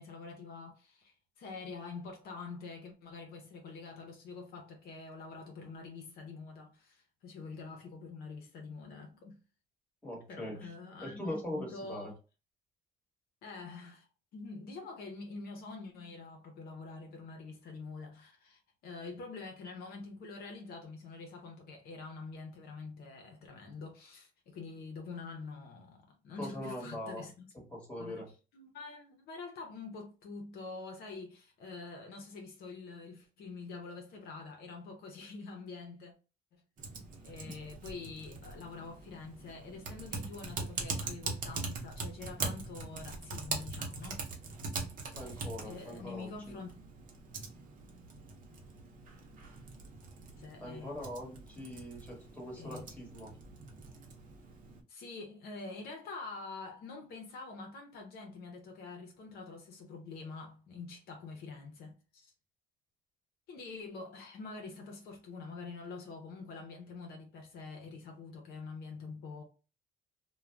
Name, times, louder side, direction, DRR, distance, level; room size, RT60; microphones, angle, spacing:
voice 1, 0.0-9.4 10.3-12.1 13.4-27.5 28.0-28.2 28.5-36.1 36.5-36.6 37.2-44.3 45.2-46.7 50.4-50.9 52.6-52.9 54.9-62.3 63.5-69.4, left 4 dB, 65° left, 0.7 m, -46 dB
voice 2, 10.0-10.7 11.0-12.1 26.3-27.2 27.7-28.3 37.4-37.5 45.1-46.3 50.6-53.3, left 1 dB, 10° left, 1.3 m, -41 dB
Typing, 36.8-54.8, right 4 dB, 50° right, 0.7 m, -42 dB
2.4 x 2.2 x 3.2 m
cardioid pair, 110°, 17 cm